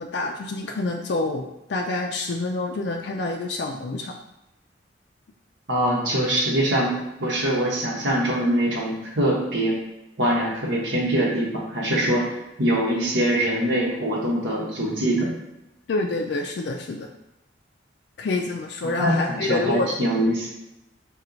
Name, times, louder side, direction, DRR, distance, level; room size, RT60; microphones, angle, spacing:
voice 1, 0.0-4.2 15.9-17.1 18.2-19.9, left 2 dB, 60° left, 1 dB, 0.3 m, -27 dB
voice 2, 5.7-9.7 10.2-15.3 18.8-20.5, right 1 dB, 75° right, -3 dB, 1.0 m, -23 dB
4.3 x 2.3 x 3.8 m, 0.92 s
head